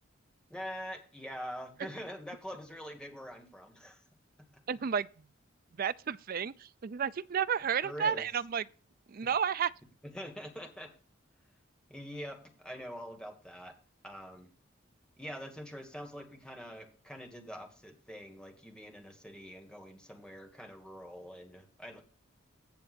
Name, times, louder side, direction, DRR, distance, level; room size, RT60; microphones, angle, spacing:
voice 1, 0.5-4.0 4.4-4.5 7.8-8.2 10.0-11.0 11.9-13.7 14.0-14.5 15.2-22.0, equal, 5° left, 1.6 m, -44 dB
voice 2, 4.7-5.1 5.8-8.6 9.1-9.7, right 7 dB, 50° right, 0.4 m, -32 dB
16.0 x 6.8 x 2.5 m
head